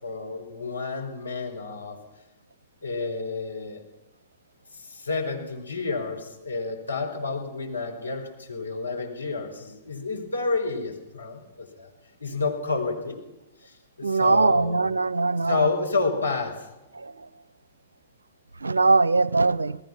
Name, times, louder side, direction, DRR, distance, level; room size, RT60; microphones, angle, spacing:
voice 1, 0.0-2.0 2.8-3.8 4.7-11.9 12.2-13.2 13.6-14.8 15.4-16.7, left 3 dB, 80° left, 5.2 m, -30 dB
voice 2, 14.0-15.6 17.0-17.1 18.6-19.8, right 3 dB, 75° right, 0.7 m, -21 dB
28.5 x 19.5 x 5.9 m
figure-of-eight pair, 105°, 0 cm